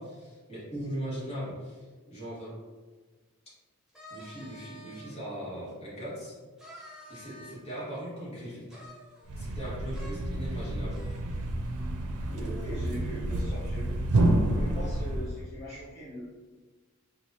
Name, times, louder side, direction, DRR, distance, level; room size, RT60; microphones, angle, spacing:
voice 1, 0.0-2.5 4.1-6.4 7.1-8.8 9.4-11.0, right 1 dB, 25° left, -9 dB, 1.4 m, -39 dB
sound 1, 3.9-5.1 5.7-5.8 6.6-7.8 8.7-9.7 9.9-10.1 10.5-10.6 10.9-11.3, equal, 5° right, 0.6 m, -49 dB
Thump thud, 9.2-15.5, right 1 dB, 85° right, 0.5 m, -29 dB
voice 2, 12.2-14.0 14.5-16.2, equal, 45° left, -12 dB, 1.1 m, -40 dB
4.5 x 2.4 x 2.7 m, 1.3 s
head